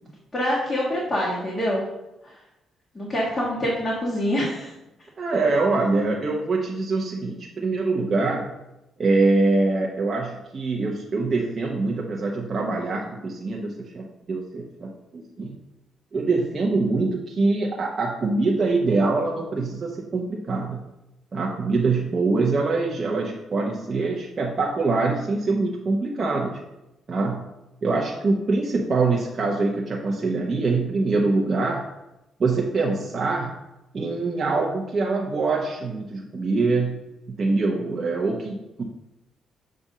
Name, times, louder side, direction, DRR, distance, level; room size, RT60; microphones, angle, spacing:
voice 1, 0.3-1.8 2.2-2.3 2.9-4.7, equal, 20° left, -5 dB, 1.5 m, -25 dB
voice 2, 5.2-8.5 9.0-15.6 16.1-20.8 21.3-26.6 27.1-27.4 27.8-31.8 32.4-33.5 33.9-37.0 37.4-38.8, right 3 dB, 40° right, -1 dB, 0.8 m, -24 dB
7.3 x 2.6 x 5.4 m, 0.94 s
cardioid pair, 90°, 0 cm